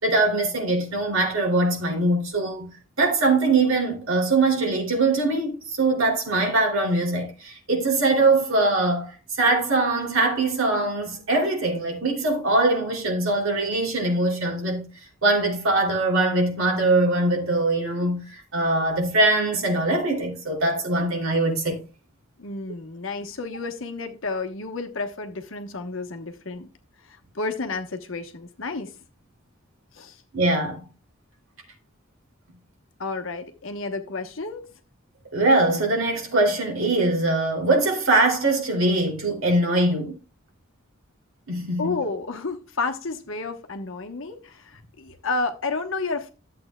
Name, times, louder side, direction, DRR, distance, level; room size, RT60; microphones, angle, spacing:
voice 1, 0.0-2.7 3.0-14.9 15.2-21.8 30.3-30.8 35.3-40.2 41.5-41.9, right 2 dB, 85° right, 2.8 m, -22 dB
voice 2, 22.4-26.7 27.1-28.9 29.9-30.2 33.0-34.7 41.8-46.3, left 3 dB, 75° left, 1.1 m, -31 dB
12.0 x 7.7 x 2.3 m
head